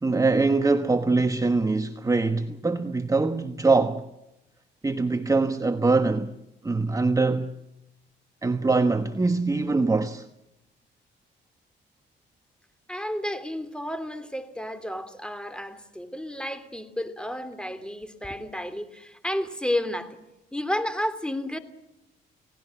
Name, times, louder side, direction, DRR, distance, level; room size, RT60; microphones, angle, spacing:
voice 1, 0.0-4.1 4.8-6.3 6.6-7.5 8.4-10.3, right 3 dB, 15° right, 1.2 m, -23 dB
voice 2, 12.9-20.2 20.5-21.6, left 1 dB, 5° left, 3.0 m, -31 dB
29.5 x 18.5 x 7.8 m
cardioid pair, 90°, 20 cm